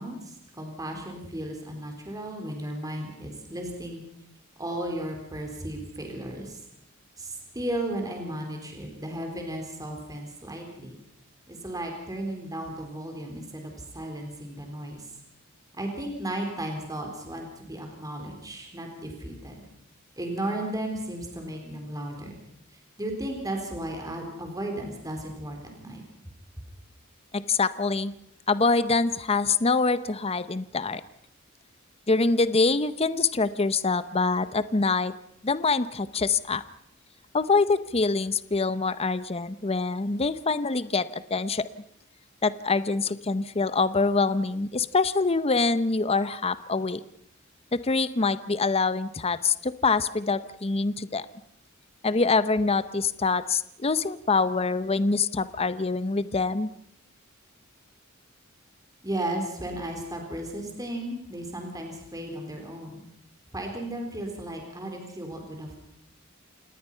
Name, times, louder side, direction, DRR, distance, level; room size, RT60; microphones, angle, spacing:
voice 1, 0.0-4.0 4.6-6.6 7.2-11.0 11.5-15.1 15.7-19.6 20.2-22.4 22.7-26.0 59.0-63.0 63.5-65.8, right 1 dB, 20° right, 2 dB, 4.2 m, -35 dB
voice 2, 27.3-28.1 28.5-31.0 32.1-35.1 35.4-36.6 37.3-41.7 42.4-47.0 47.8-51.2 52.0-56.7, left 4 dB, 30° left, 14 dB, 0.8 m, -25 dB
28.5 x 19.0 x 5.7 m, 0.74 s
head